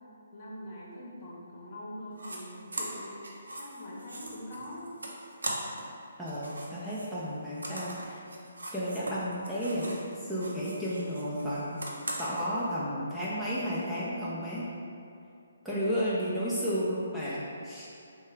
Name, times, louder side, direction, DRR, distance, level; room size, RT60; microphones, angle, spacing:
voice 1, 0.3-3.2 3.6-4.9, left 1 dB, 45° left, -5 dB, 0.8 m, -43 dB
sound 1, 2.1-2.4 2.7-5.9 6.2-10.1 10.3-12.4, right 1 dB, 85° right, 0.6 m, -40 dB
voice 2, 6.2-8.2 8.7-11.8 12.2-14.7 15.6-17.9, equal, 5° right, -10 dB, 0.5 m, -32 dB
3.5 x 2.2 x 3.2 m, 2.5 s
figure-of-eight pair, 145°, 0 cm